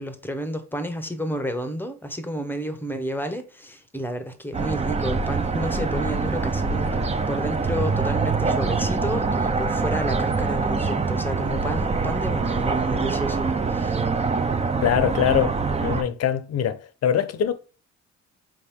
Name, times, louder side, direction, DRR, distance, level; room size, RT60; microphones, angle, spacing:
voice 1, 0.0-14.0, equal, 5° left, 0.8 m, -31 dB
sound 1, 4.5-16.0, right 4 dB, 20° right, 0.5 m, -24 dB
voice 2, 14.8-15.5 15.8-17.5, left 9 dB, 55° left, 0.7 m, -23 dB
5.0 x 2.9 x 3.5 m
cardioid pair, 90°, 30 cm